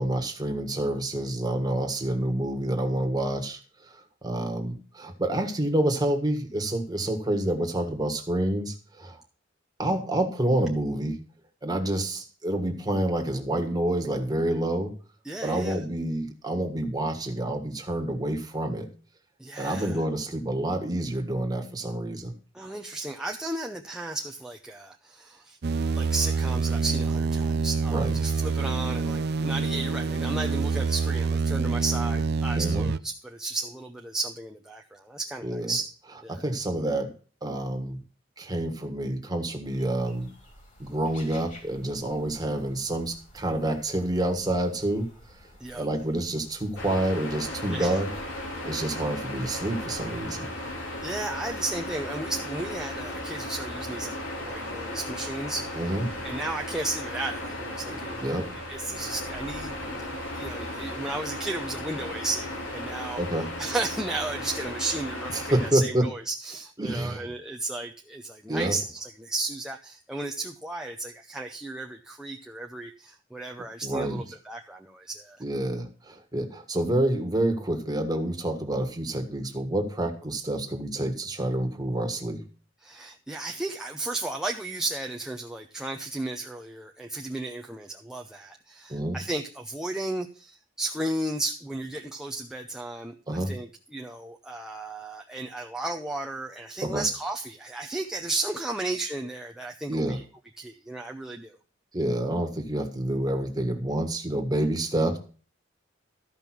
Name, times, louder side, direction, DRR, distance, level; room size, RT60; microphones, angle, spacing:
voice 1, 0.0-9.2 9.8-11.2 11.6-14.9 15.4-18.9 19.6-22.3 27.9-28.1 32.5-32.9 35.4-35.7 36.3-37.1 37.4-38.0 38.4-40.3 40.8-45.4 45.7-48.1 48.6-50.5 55.8-56.1 58.2-58.5 63.2-63.5 65.3-66.1 66.8-67.3 68.5-68.8 73.8-74.2 75.4-82.4 88.9-89.2 93.3-93.5 96.8-97.0 99.9-100.2 101.9-105.2, right 1 dB, 20° right, 4 dB, 1.6 m, -28 dB
voice 2, 15.2-15.8 19.4-20.0 22.5-25.6 26.0-35.9 36.2-36.4 45.6-45.9 47.7-48.0 51.0-55.8 56.2-58.3 58.7-63.2 63.6-75.4 82.8-100.2 100.6-101.6, right 2 dB, 5° right, 1 dB, 0.6 m, -34 dB
sound 1, 25.6-33.0, right 4 dB, 55° right, 0.5 m, -26 dB
sound 2, 39.6-50.3, left 1 dB, 40° left, 3.6 m, -53 dB
sound 3, 46.8-65.7, left 1 dB, 80° left, 3.2 m, -36 dB
13.5 x 5.4 x 6.0 m, 0.38 s
head